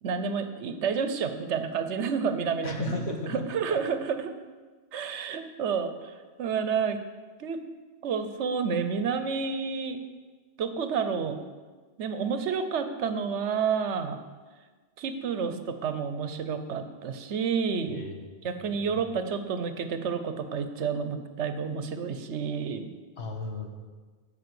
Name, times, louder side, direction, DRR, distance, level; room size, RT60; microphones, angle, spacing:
voice 1, 0.0-3.0 3.2-4.3 4.9-7.0 7.4-7.6 8.0-10.0 10.6-11.4 12.0-14.2 15.0-18.0 18.4-22.9, right 6 dB, 75° right, 9 dB, 1.0 m, -30 dB
voice 2, 2.6-3.8 17.9-18.3 18.7-19.1 23.2-23.7, left 3 dB, 65° left, 2 dB, 1.6 m, -36 dB
9.4 x 5.7 x 7.6 m, 1.4 s
omnidirectional pair, 1.2 m